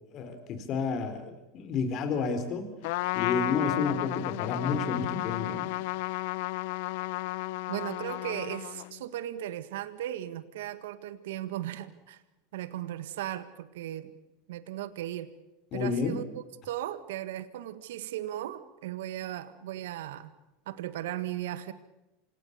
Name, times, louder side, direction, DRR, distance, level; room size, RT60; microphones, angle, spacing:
voice 1, 0.1-2.7 3.1-5.7 15.7-16.2, left 4 dB, 45° left, 8 dB, 4.2 m, -30 dB
Trumpet, 2.8-9.0, left 20 dB, 70° left, 0.7 m, -33 dB
voice 2, 7.7-12.2 12.5-14.1 14.5-15.3 15.7-20.3 20.7-21.7, right 13 dB, 75° right, 13 dB, 1.7 m, -37 dB
27.5 x 18.0 x 6.9 m, 1.0 s
hypercardioid pair, 95°, 0 cm